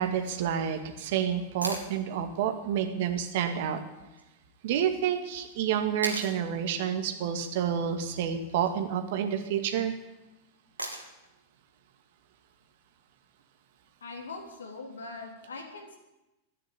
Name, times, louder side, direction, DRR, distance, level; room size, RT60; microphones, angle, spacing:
voice 1, 0.0-3.8 4.6-9.9, right 8 dB, 55° right, 6 dB, 2.1 m, -29 dB
sound 1, 1.6-1.9 4.2-4.3 6.0-6.4 8.4-8.8 10.8-11.3 13.4-13.5, right 1 dB, 85° right, 2.5 m, -36 dB
voice 2, 14.0-16.0, left 3 dB, 70° left, 2 dB, 3.5 m, -41 dB
14.5 x 10.0 x 9.2 m, 0.97 s
figure-of-eight pair, 90°, 0 cm